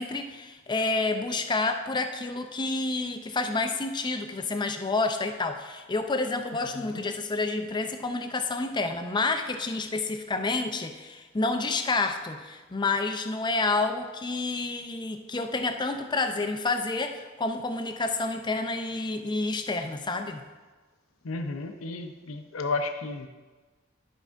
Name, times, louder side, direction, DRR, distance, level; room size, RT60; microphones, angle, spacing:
voice 1, 0.0-20.4, left 3 dB, 20° left, 7 dB, 0.5 m, -29 dB
voice 2, 6.7-7.0 21.2-23.3, left 3 dB, 75° left, 7 dB, 0.7 m, -33 dB
11.5 x 5.5 x 3.6 m, 1.3 s
head